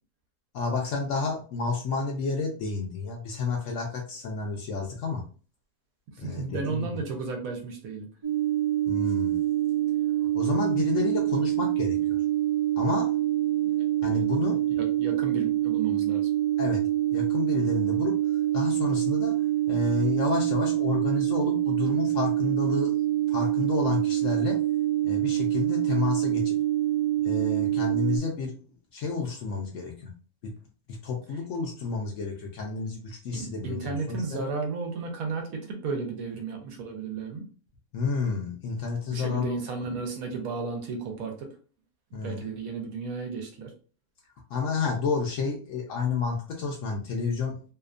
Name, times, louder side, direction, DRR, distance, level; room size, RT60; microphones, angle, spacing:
voice 1, 0.5-5.2 6.2-7.0 8.9-9.4 10.3-12.2 12.8-13.1 14.0-14.6 16.6-16.8 17.1-18.1 18.5-19.3 19.7-23.0 23.3-24.6 25.0-26.6 27.2-28.5 28.9-30.1 30.4-30.5 31.0-34.4 37.9-39.6 42.1-42.4 44.5-47.6, left 4 dB, 70° left, 0 dB, 0.8 m, -30 dB
voice 2, 6.1-8.1 14.0-14.4 14.8-16.3 33.3-37.5 39.1-41.6 42.2-43.7, right 4 dB, 70° right, 3 dB, 1.0 m, -33 dB
sound 1, 8.2-28.2, right 13 dB, 35° right, 0.5 m, -26 dB
2.8 x 2.1 x 2.4 m, 0.39 s
omnidirectional pair, 1.7 m